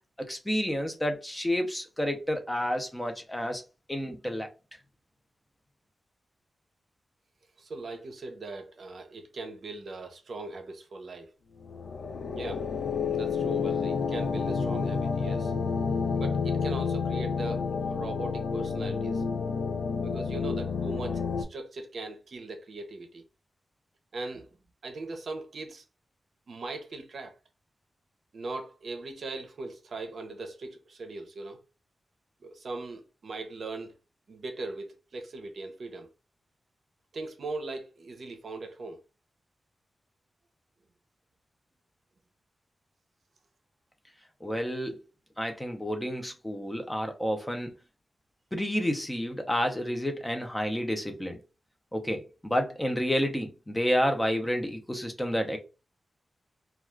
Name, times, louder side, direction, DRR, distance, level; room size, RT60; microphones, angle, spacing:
voice 1, 0.2-3.6 3.9-4.5 44.4-45.0 45.4-47.7 48.5-51.4 51.9-55.6, equal, 10° left, 0.6 m, -30 dB
voice 2, 7.6-11.3 12.3-12.7 13.1-15.5 16.1-19.2 20.0-23.2 24.1-24.6 24.8-25.8 26.5-27.3 28.3-31.6 32.4-34.0 34.3-36.1 37.1-39.0, right 3 dB, 60° right, 0.6 m, -39 dB
sound 1, 11.6-21.4, left 5 dB, 85° left, 0.3 m, -30 dB
2.3 x 2.3 x 3.1 m
wide cardioid pair, 135°, 0 cm